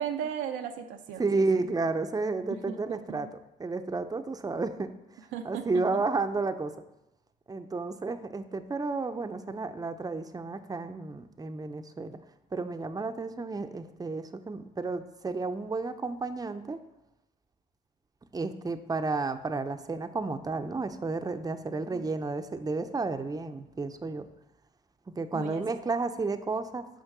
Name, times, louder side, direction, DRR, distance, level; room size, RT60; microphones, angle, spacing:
voice 1, 0.0-1.4 2.5-3.3 5.3-6.0 21.8-22.1 25.3-25.6, right 8 dB, 85° right, 5 dB, 0.7 m, -36 dB
voice 2, 1.2-3.3 3.6-6.7 7.5-12.2 12.5-16.8 18.3-24.3 25.1-26.9, right 3 dB, 20° right, 8 dB, 0.6 m, -32 dB
6.5 x 5.0 x 6.1 m, 0.89 s
supercardioid pair, 65°, 19 cm